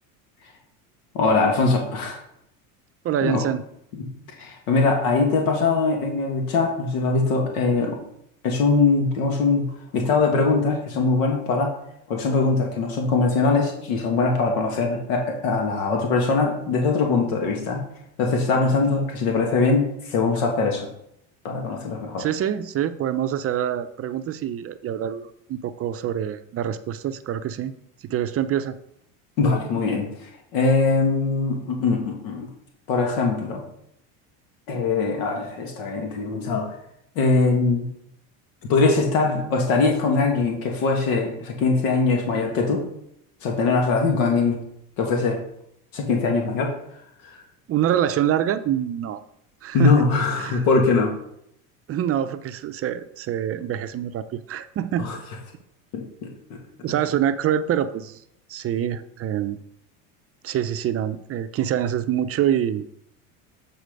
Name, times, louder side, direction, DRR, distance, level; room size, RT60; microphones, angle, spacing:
voice 1, 1.1-2.2 3.2-3.4 4.4-8.0 8.4-11.8 12.1-17.8 18.2-20.9 21.4-22.2 29.4-30.1 30.5-32.5 32.9-33.6 34.7-36.7 37.1-37.9 38.7-42.8 43.4-44.6 45.0-45.4 45.9-46.7 49.7-51.1 55.0-55.2 55.9-56.6, left 3 dB, 80° left, 2 dB, 1.7 m, -22 dB
voice 2, 3.0-3.6 22.2-27.7 28.0-28.8 47.7-49.2 49.6-49.9 50.4-50.7 51.9-55.1 56.8-58.2 58.5-59.6 60.4-62.8, right 10 dB, 35° right, 11 dB, 0.5 m, -25 dB
8.1 x 4.3 x 5.2 m, 0.75 s
supercardioid pair, 110°, 41 cm